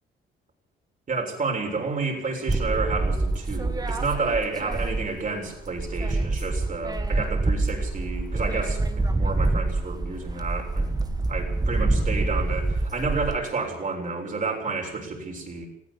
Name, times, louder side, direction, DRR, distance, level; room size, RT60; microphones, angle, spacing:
voice 1, 1.1-15.7, right 4 dB, 40° right, 1 dB, 6.9 m, -30 dB
sound 1, 2.5-5.3 5.6-13.4, right 2 dB, 20° right, 2.0 m, -26 dB
20.0 x 16.0 x 8.5 m, 0.82 s
cardioid pair, 90°, 20 cm